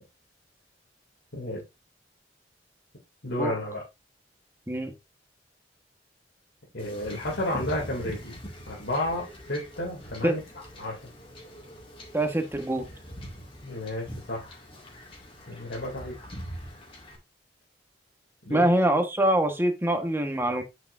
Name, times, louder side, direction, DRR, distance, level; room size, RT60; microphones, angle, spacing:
voice 1, 3.2-3.8 6.7-8.4 8.7-10.4 10.8-11.0 13.6-14.6 15.5-16.1 18.5-18.7, left 1 dB, 90° left, -4 dB, 2.6 m, -31 dB
Wind / Ocean / Boat Water vehicle, 6.8-17.2, equal, 30° left, 2.2 m, -43 dB
voice 2, 12.1-12.9 18.5-20.6, right 1 dB, 15° right, 5 dB, 1.3 m, -24 dB
8.4 x 6.0 x 2.6 m, 0.23 s
head